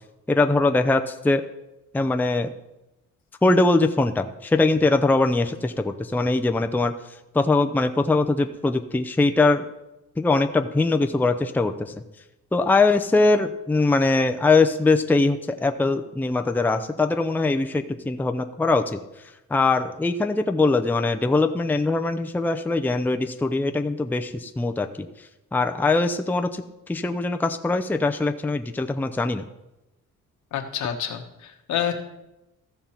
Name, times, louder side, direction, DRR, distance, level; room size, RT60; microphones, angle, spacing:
voice 1, 0.3-1.4 1.9-2.5 3.4-6.9 7.3-9.7 10.2-11.9 12.5-19.0 19.5-29.4, left 3 dB, 5° left, 6 dB, 0.5 m, -22 dB
voice 2, 30.5-31.9, left 9 dB, 70° left, 3 dB, 1.4 m, -28 dB
14.5 x 5.4 x 4.4 m, 0.94 s
cardioid pair, 90°, 30 cm